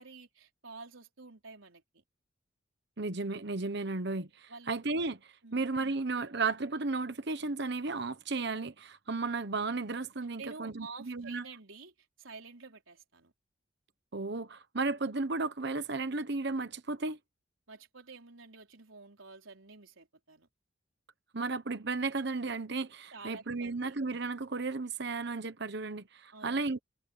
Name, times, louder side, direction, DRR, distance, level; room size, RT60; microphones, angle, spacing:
voice 1, 0.0-2.0 4.5-4.7 5.4-5.6 10.4-13.3 17.7-20.5 23.1-24.0 26.3-26.6, right 4 dB, 85° right, 4.1 m, -50 dB
voice 2, 3.0-11.4 14.1-17.2 21.3-26.8, right 3 dB, 55° right, 1.1 m, -34 dB
head